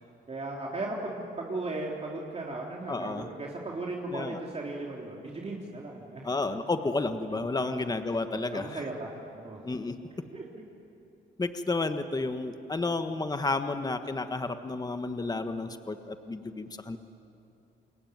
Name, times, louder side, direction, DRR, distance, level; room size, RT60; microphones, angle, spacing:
voice 1, 0.3-6.6 7.6-7.9 8.3-9.6 10.3-10.6, right 2 dB, 30° right, -2 dB, 3.4 m, -37 dB
voice 2, 2.9-3.3 4.1-4.4 6.2-8.8 9.6-9.9 11.4-17.0, left 3 dB, 20° left, 8 dB, 1.4 m, -31 dB
28.0 x 22.5 x 9.4 m, 2.7 s
cardioid pair, 90°, 20 cm